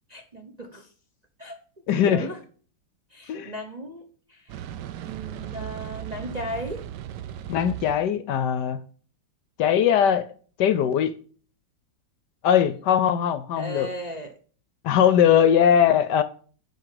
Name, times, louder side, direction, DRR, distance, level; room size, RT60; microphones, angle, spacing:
voice 1, 0.1-0.9 1.4-1.6 1.9-2.4 3.1-4.6 5.0-6.8 13.6-14.3, right 1 dB, 30° right, 0.7 m, -36 dB
voice 2, 1.9-2.3 3.3-3.5 7.5-8.8 9.6-10.3 10.6-11.1 12.4-13.9 14.8-16.2, left 9 dB, 70° left, 1.2 m, -20 dB
sound 1, 4.5-8.0, right 11 dB, 70° right, 1.1 m, -37 dB
7.8 x 5.2 x 7.6 m
omnidirectional pair, 2.1 m